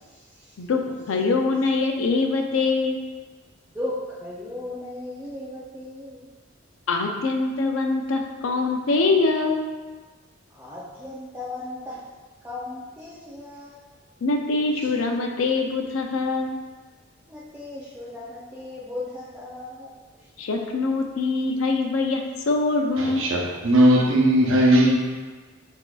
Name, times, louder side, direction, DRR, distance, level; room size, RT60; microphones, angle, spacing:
voice 1, 0.0-0.5 0.9-1.0 3.7-6.3 10.5-12.1 12.4-13.8 17.3-20.3, left 2 dB, 10° right, -8 dB, 0.4 m, -36 dB
voice 2, 1.1-3.0 6.9-9.6 14.2-16.6 20.4-23.3, left 3 dB, 85° left, 3 dB, 0.5 m, -23 dB
voice 3, 23.0-24.9, right 1 dB, 75° right, -2 dB, 0.7 m, -18 dB
6.1 x 2.7 x 2.3 m, 1.4 s
head